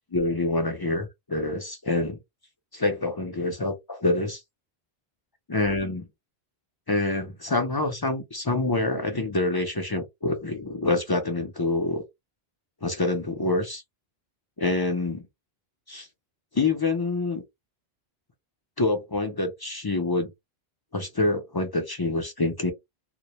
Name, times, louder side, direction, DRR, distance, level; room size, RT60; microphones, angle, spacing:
voice 1, 0.1-2.2 2.7-4.4 5.5-6.1 6.9-12.0 12.8-13.8 14.6-15.2 15.9-16.1 16.5-17.4 18.8-20.3 20.9-22.7, left 2 dB, 35° left, 0.4 m, -26 dB
2.1 x 2.0 x 2.8 m
omnidirectional pair, 1.1 m